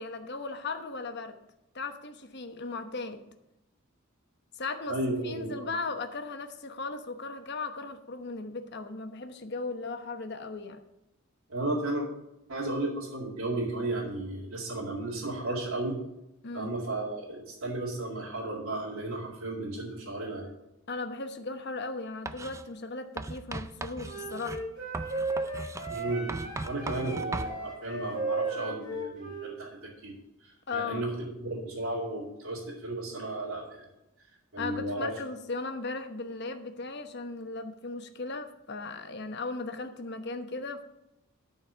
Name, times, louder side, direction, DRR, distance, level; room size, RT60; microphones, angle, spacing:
voice 1, 0.0-1.3 1.7-3.2 4.5-5.0 5.2-10.8 16.4-16.7 20.9-24.6 30.7-31.0 34.6-40.8, left 3 dB, 55° left, 7 dB, 1.0 m, -37 dB
voice 2, 4.9-5.8 11.5-12.1 12.5-16.0 16.5-20.5 25.9-30.2 30.4-33.9 34.5-35.2, right 2 dB, 80° right, -6 dB, 2.2 m, -34 dB
Writing, 22.3-22.6 23.2-27.6, right 2 dB, 15° right, 0.4 m, -38 dB
Wind instrument woodwind instrument, 24.0-29.5, right 3 dB, 45° right, 4.1 m, -35 dB
13.0 x 4.5 x 6.9 m, 0.90 s
head